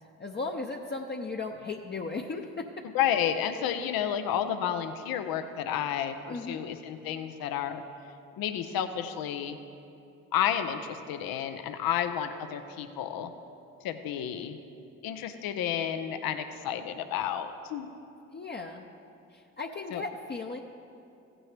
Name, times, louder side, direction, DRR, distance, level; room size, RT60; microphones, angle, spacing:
voice 1, 0.2-2.9 6.3-6.6 18.3-18.9 19.3-20.6, left 3 dB, 30° left, 1 dB, 0.6 m, -36 dB
voice 2, 2.9-7.8 8.4-9.6 10.3-13.3 13.8-14.6 15.0-17.9 19.9-20.0, left 9 dB, 80° left, 9 dB, 0.6 m, -31 dB
15.0 x 8.8 x 3.3 m, 2.7 s
supercardioid pair, 50°, 35 cm